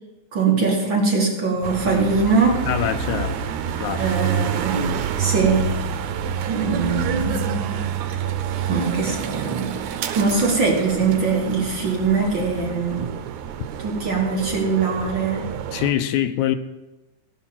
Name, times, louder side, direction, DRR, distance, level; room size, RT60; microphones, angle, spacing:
voice 1, 0.3-2.7 4.0-5.8 6.4-7.8 8.7-9.9 10.1-13.1 13.8-15.5, right 4 dB, 45° right, -1 dB, 1.8 m, -22 dB
sound 1, 1.6-15.9, right 8 dB, 85° right, 2.2 m, -28 dB
voice 2, 2.7-3.4 3.8-4.1 15.7-16.6, left 11 dB, 80° left, 9 dB, 1.9 m, -24 dB
16.5 x 5.5 x 5.8 m, 1.1 s
omnidirectional pair, 3.6 m